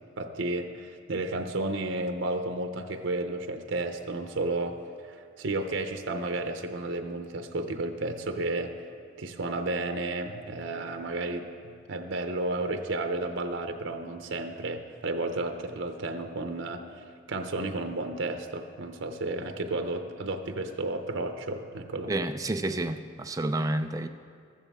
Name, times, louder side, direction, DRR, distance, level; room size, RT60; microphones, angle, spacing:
voice 1, 0.2-4.8 5.1-8.7 9.2-22.3, right 2 dB, 85° right, 6 dB, 0.8 m, -32 dB
voice 2, 22.1-24.1, right 1 dB, 20° right, 8 dB, 0.4 m, -30 dB
14.5 x 14.0 x 3.6 m, 2.1 s
head